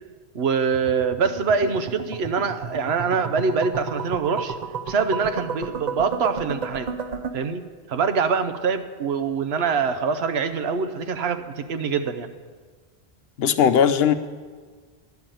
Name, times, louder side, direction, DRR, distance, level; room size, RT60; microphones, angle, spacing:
voice 1, 0.3-4.6 4.9-6.9 7.3-7.6 7.9-12.3, right 5 dB, 75° right, 9 dB, 1.0 m, -24 dB
sound 1, 0.7-7.3, right 5 dB, 45° right, 0.7 m, -33 dB
voice 2, 13.4-14.1, left 8 dB, 75° left, 11 dB, 0.8 m, -18 dB
11.5 x 5.9 x 9.0 m, 1.5 s
omnidirectional pair, 1.1 m